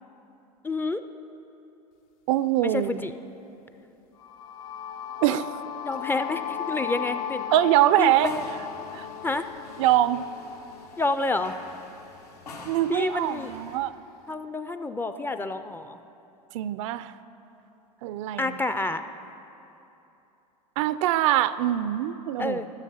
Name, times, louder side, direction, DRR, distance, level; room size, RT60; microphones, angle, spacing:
voice 1, 0.6-1.0 2.6-3.1 5.8-7.5 8.0-8.4 9.2-9.5 11.0-11.6 12.9-13.5 14.3-16.0 18.4-19.0 22.4-22.7, left 2 dB, 10° left, 10 dB, 0.4 m, -29 dB
voice 2, 2.3-3.1 5.2-5.6 7.5-8.3 8.9-9.1 9.8-10.2 12.7-13.9 16.5-17.1 18.0-18.6 20.8-22.6, right 13 dB, 55° right, 15 dB, 0.4 m, -23 dB
sound 1, 4.2-12.1, left 9 dB, 60° left, 0.6 m, -36 dB
sound 2, 8.0-13.8, left 2 dB, 85° left, 1.5 m, -46 dB
13.0 x 7.2 x 5.6 m, 2.9 s
hypercardioid pair, 85°, 20 cm